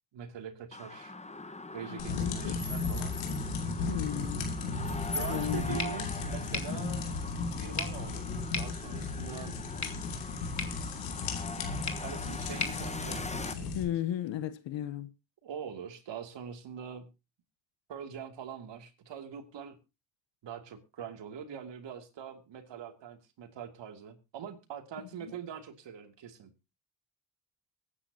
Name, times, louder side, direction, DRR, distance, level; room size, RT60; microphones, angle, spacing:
voice 1, 0.1-1.1 1.7-3.2 5.1-7.0 7.5-8.3 8.5-9.6 12.0-13.8 15.4-17.1 17.9-19.8 20.4-26.5, right 8 dB, 65° right, 2.8 m, -43 dB
sound 1, 0.7-13.6, left 2 dB, 15° left, 1.4 m, -42 dB
voice 2, 1.9-2.5 3.8-4.5 5.0-5.8 13.7-15.1, left 11 dB, 65° left, 1.2 m, -35 dB
sound 2, 2.0-13.8, left 4 dB, 90° left, 3.2 m, -35 dB
sound 3, 5.8-13.8, left 4 dB, 35° left, 2.8 m, -42 dB
23.0 x 9.9 x 2.9 m
hypercardioid pair, 55°, 48 cm